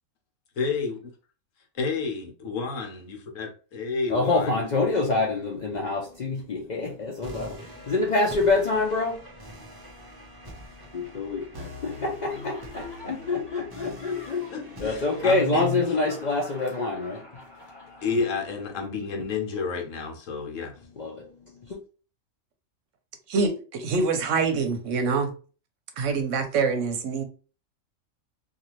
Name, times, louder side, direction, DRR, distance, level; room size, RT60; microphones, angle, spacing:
voice 1, 0.6-1.0 1.7-4.6 14.5-15.7 18.0-20.8, left 4 dB, 70° left, 1.0 m, -31 dB
voice 2, 4.1-9.6 10.9-17.4 18.0-19.3 21.0-21.8, left 3 dB, 85° left, 0.4 m, -27 dB
sound 1, 7.2-18.2, equal, 35° right, 0.3 m, -45 dB
Laughter, 12.3-18.6, left 2 dB, 25° left, 0.7 m, -46 dB
voice 3, 23.3-25.3 26.0-27.2, right 4 dB, 70° right, 0.9 m, -25 dB
2.6 x 2.4 x 3.0 m
omnidirectional pair, 1.5 m